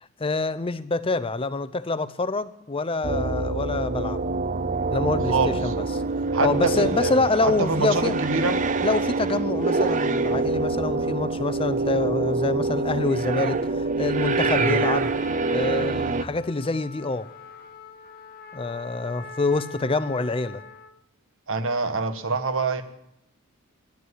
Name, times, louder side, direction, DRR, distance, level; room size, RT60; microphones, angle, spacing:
voice 1, 0.2-4.2 4.9-5.8 6.4-8.2 8.8-15.1 15.5-17.3 18.5-20.6, left 3 dB, 25° left, 0.6 m, -26 dB
sound 1, 3.0-16.2, right 3 dB, 35° right, 0.6 m, -25 dB
voice 2, 5.3-5.7 6.3-7.1 7.4-8.6 14.6-14.8 21.5-22.8, right 3 dB, 60° right, 1.2 m, -26 dB
Trumpet, 14.4-21.0, left 4 dB, 45° left, 0.9 m, -43 dB
11.5 x 10.5 x 9.5 m
head